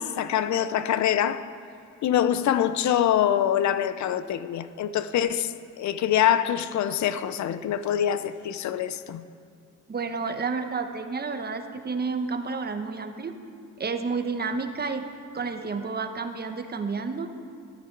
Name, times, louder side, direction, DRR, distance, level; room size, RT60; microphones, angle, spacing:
voice 1, 0.0-1.5 2.0-9.2, left 10 dB, 70° left, 0.7 m, -25 dB
voice 2, 9.9-13.3 13.8-15.0 15.3-17.3, right 4 dB, 35° right, 1.1 m, -30 dB
13.5 x 13.0 x 4.6 m
cardioid pair, 90°, 30 cm